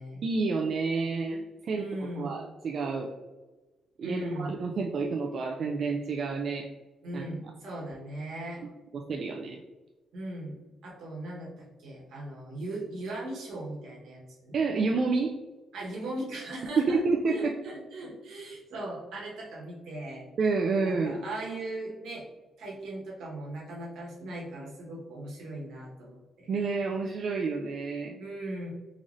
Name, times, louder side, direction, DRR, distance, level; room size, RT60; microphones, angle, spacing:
voice 1, 0.2-3.1 4.0-6.7 7.1-7.2 8.9-9.6 14.5-15.4 16.8-17.5 20.4-21.2 26.5-28.2, right 4 dB, 55° right, 1 dB, 0.3 m, -29 dB
voice 2, 1.7-2.3 4.0-4.6 7.0-8.6 10.1-14.6 15.7-17.0 17.3-20.2 20.8-22.2 22.6-26.5 28.2-28.7, right 1 dB, 80° right, -3 dB, 1.1 m, -39 dB
3.9 x 3.1 x 2.5 m, 1.2 s
cardioid pair, 100°, 0 cm